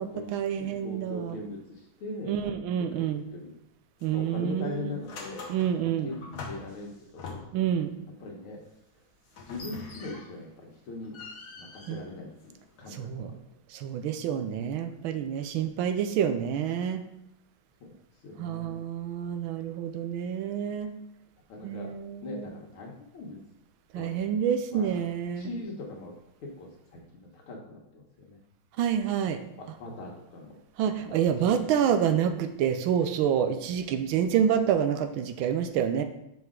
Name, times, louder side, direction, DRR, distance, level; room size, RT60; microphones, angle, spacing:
voice 1, 0.0-1.4 2.2-3.2 4.0-5.0 5.5-6.1 7.5-7.9 11.9-12.0 12.9-13.3 13.7-17.0 18.4-20.9 21.6-22.5 23.9-25.5 28.8-29.4 30.8-36.0, right 8 dB, 80° right, 8 dB, 1.4 m, -28 dB
voice 2, 0.6-2.3 3.0-3.1 3.3-3.5 4.1-5.5 5.8-7.4 8.2-8.6 9.5-11.1 11.6-12.3 12.8-13.3 17.8-17.9 18.2-18.8 21.5-21.9 22.2-23.4 24.0-24.3 24.7-24.9 25.4-26.1 26.4-27.0 27.3-28.4 29.8-30.6 31.0-31.3 31.7-31.9, left 2 dB, 85° left, -1 dB, 2.0 m, -41 dB
sound 1, 4.0-4.3 4.6-7.8 9.3-10.5 10.9-12.8, left 4 dB, 55° left, 1.4 m, -44 dB
5.6 x 5.3 x 3.7 m, 0.83 s
omnidirectional pair, 2.3 m